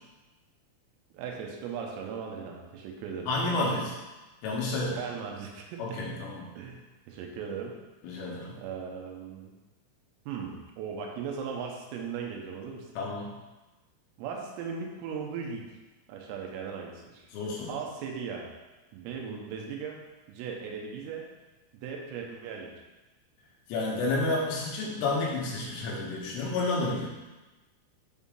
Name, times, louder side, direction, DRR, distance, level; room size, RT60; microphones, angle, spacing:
voice 1, 1.1-3.3 4.9-6.0 6.6-7.8 8.6-9.5 10.3-12.9 14.2-15.7 16.1-17.3 17.7-18.5 18.9-20.0 20.3-21.2 21.8-22.7, right 6 dB, 90° right, 0 dB, 3.4 m, -38 dB
voice 2, 3.3-4.0 4.4-5.0 5.8-6.5 8.0-8.6 13.0-13.3 17.3-17.7 23.7-27.1, left 2 dB, 80° left, -4 dB, 3.6 m, -30 dB
8.2 x 5.3 x 2.4 m, 1.1 s
omnidirectional pair, 5.9 m